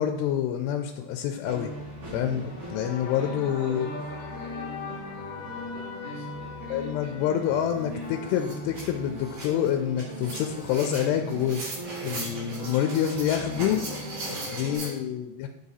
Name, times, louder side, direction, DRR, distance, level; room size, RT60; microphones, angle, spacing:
voice 1, 0.0-1.7 2.1-3.9 6.7-11.8 12.0-13.8 14.5-15.5, left 10 dB, 90° left, 5 dB, 2.7 m, -27 dB
sound 1, 1.4-14.8, right 1 dB, 40° right, 3.1 m, -39 dB
sound 2, 2.4-8.8, left 6 dB, 75° left, 2.6 m, -42 dB
voice 2, 2.8-8.2 12.2-13.5 14.0-14.8, right 1 dB, 80° right, -14 dB, 5.3 m, -47 dB
sound 3, 7.6-7.7 8.0-14.9, right 2 dB, 60° right, 4.9 m, -38 dB
9.7 x 4.9 x 4.1 m, 0.94 s
omnidirectional pair, 4.7 m